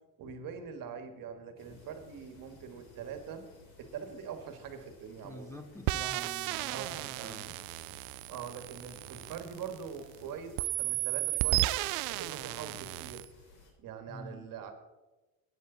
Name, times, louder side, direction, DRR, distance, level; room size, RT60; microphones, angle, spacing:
voice 1, 0.2-3.5 3.8-5.6 6.7-7.4 8.3-13.3 13.8-14.7, right 7 dB, 55° right, 7 dB, 1.9 m, -43 dB
sound 1, 1.6-13.7, left 3 dB, 65° left, 4.3 m, -59 dB
voice 2, 5.2-6.8 7.2-7.6 14.1-14.5, left 1 dB, 5° left, 7 dB, 0.8 m, -47 dB
sound 2, 5.9-10.2 10.6-13.3, right 20 dB, 90° right, 0.5 m, -34 dB
14.5 x 9.4 x 4.0 m, 1.1 s
cardioid pair, 120°, 40 cm